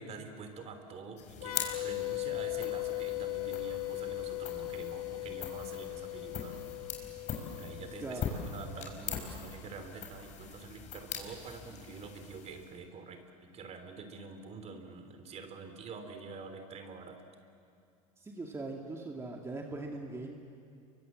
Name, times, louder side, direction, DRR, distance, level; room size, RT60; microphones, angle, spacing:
voice 1, 0.0-6.6 7.3-8.3 8.5-17.2, right 4 dB, 35° right, 7 dB, 3.3 m, -47 dB
sound 1, 1.2-12.8, left 7 dB, 40° left, 4.8 m, -42 dB
sound 2, 1.4-8.9, left 20 dB, 85° left, 1.6 m, -38 dB
voice 2, 8.0-8.4 18.2-20.4, right 2 dB, 15° right, 1 dB, 2.2 m, -41 dB
29.0 x 24.0 x 7.6 m, 2.5 s
hypercardioid pair, 105°, 18 cm